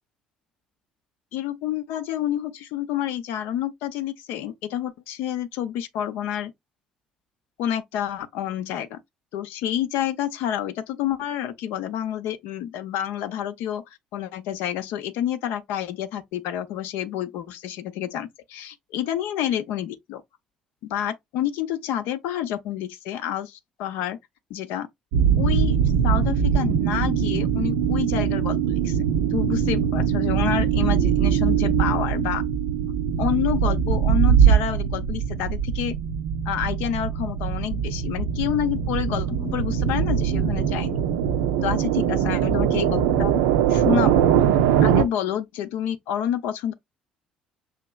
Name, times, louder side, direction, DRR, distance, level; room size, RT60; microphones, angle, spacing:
voice 1, 1.3-6.5 7.6-9.0 9.3-13.8 14.1-20.2 20.8-24.2 24.5-24.9 25.3-29.0 29.3-32.4 33.2-35.9 36.5-41.0 41.6-43.4 43.7-46.7, left 10 dB, 60° left, 0.6 m, -28 dB
sound 1, 25.1-45.0, right 8 dB, 70° right, 0.4 m, -22 dB
5.7 x 2.9 x 2.2 m
figure-of-eight pair, 55°, 4 cm